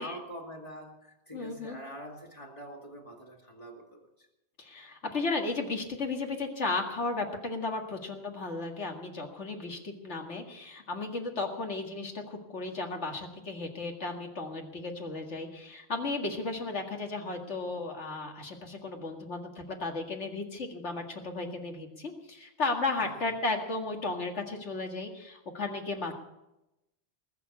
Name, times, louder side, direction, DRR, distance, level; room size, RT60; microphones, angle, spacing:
voice 1, 0.0-4.3 23.0-23.3 26.0-26.1, equal, 30° left, -2 dB, 1.9 m, -45 dB
voice 2, 1.3-1.8 4.6-26.1, left 3 dB, 85° left, 2 dB, 2.3 m, -34 dB
20.0 x 6.9 x 8.3 m, 0.93 s
omnidirectional pair, 1.2 m